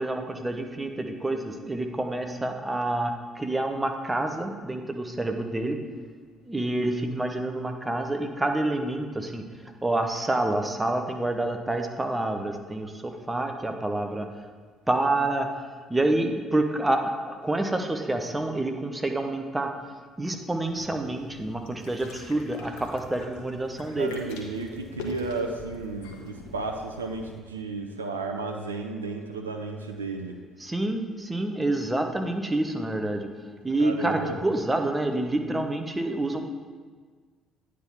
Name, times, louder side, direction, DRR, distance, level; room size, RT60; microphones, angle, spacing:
voice 1, 0.0-5.8 6.4-9.4 9.8-14.3 14.9-19.7 20.2-24.1 30.6-33.3 33.6-36.4, right 2 dB, 15° right, 5 dB, 0.8 m, -28 dB
sound 1, 20.7-27.4, left 2 dB, 70° left, 0.9 m, -43 dB
voice 2, 24.0-30.4 33.8-34.4, right 3 dB, 85° right, 3 dB, 0.4 m, -33 dB
9.3 x 3.6 x 5.6 m, 1.5 s
figure-of-eight pair, 50°, 0 cm